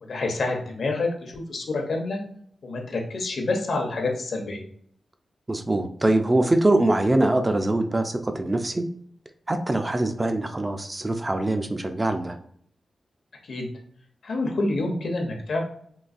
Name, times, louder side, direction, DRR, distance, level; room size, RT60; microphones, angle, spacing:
voice 1, 0.0-2.2 2.6-4.6 13.5-13.7 14.2-15.6, left 2 dB, 70° left, 1 dB, 0.8 m, -27 dB
voice 2, 5.5-8.8 9.5-12.3, right 2 dB, 25° right, 6 dB, 0.3 m, -23 dB
3.8 x 2.3 x 2.5 m, 0.63 s
cardioid pair, 75°, 0 cm